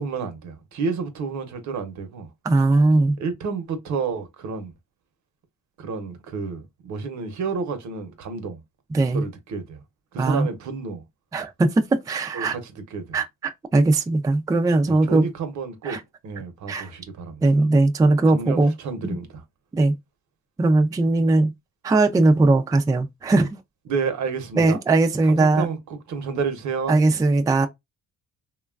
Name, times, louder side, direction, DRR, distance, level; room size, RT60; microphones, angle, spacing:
voice 1, 0.0-2.3 3.2-4.7 5.8-8.6 9.1-9.8 10.1-11.0 12.3-12.6 12.9-13.2 14.9-17.4 18.3-19.3 23.9-24.8 25.3-27.0, right 5 dB, 70° right, 0.8 m, -30 dB
voice 2, 2.4-3.2 8.9-9.2 10.2-10.5 11.3-12.6 13.1-15.3 15.8-16.0 16.7-16.9 17.4-18.7 19.0-19.2 19.7-19.9 20.6-21.5 21.8-23.6 24.6-25.7 26.9-27.7, right 2 dB, 10° right, 0.3 m, -19 dB
2.9 x 2.3 x 2.3 m
cardioid pair, 90°, 30 cm